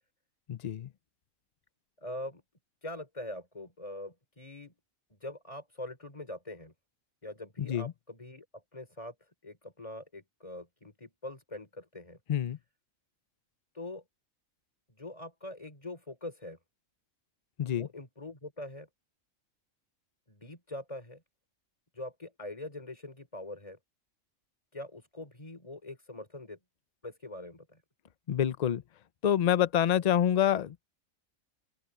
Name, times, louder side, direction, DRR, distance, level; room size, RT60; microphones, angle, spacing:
voice 1, 0.5-0.9 7.6-7.9 12.3-12.6 17.6-17.9 28.3-28.8 29.2-30.9, left 10 dB, 45° left, 0.5 m, -27 dB
voice 2, 2.0-2.4 2.8-4.8 5.1-6.7 7.2-9.1 9.4-12.2 13.7-14.0 14.9-16.6 17.7-18.9 20.3-21.2 21.9-23.8 24.7-26.6 27.0-27.8, left 1 dB, 25° left, 3.6 m, -43 dB
open air
omnidirectional pair, 1.4 m